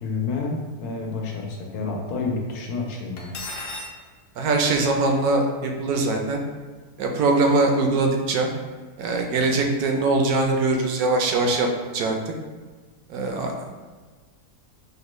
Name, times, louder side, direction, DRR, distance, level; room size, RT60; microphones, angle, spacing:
voice 1, 0.0-3.3, left 4 dB, 85° left, 0 dB, 1.2 m, -29 dB
Cutlery silverware, 3.2-3.9, left 2 dB, 60° left, 0.7 m, -34 dB
voice 2, 4.4-6.4 7.0-8.5 9.0-11.7 11.9-12.1 13.1-13.7, right 3 dB, 75° right, 2 dB, 1.0 m, -22 dB
5.3 x 2.1 x 3.1 m, 1.4 s
omnidirectional pair, 1.6 m